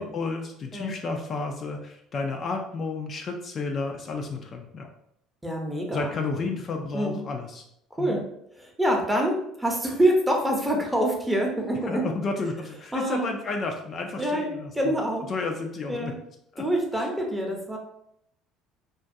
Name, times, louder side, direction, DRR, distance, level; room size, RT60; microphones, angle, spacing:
voice 1, 0.0-4.9 5.9-7.6 8.0-8.2 11.9-14.9 15.3-16.1 16.5-16.7, left 3 dB, 45° left, 3 dB, 0.3 m, -31 dB
voice 2, 5.4-6.1 6.9-7.2 7.9-8.2 8.5-12.0 12.9-13.3 14.2-15.3 15.9-16.2 16.6-17.8, right 1 dB, 10° right, 1 dB, 0.7 m, -26 dB
2.3 x 2.1 x 2.6 m, 0.76 s
hypercardioid pair, 65°, 0 cm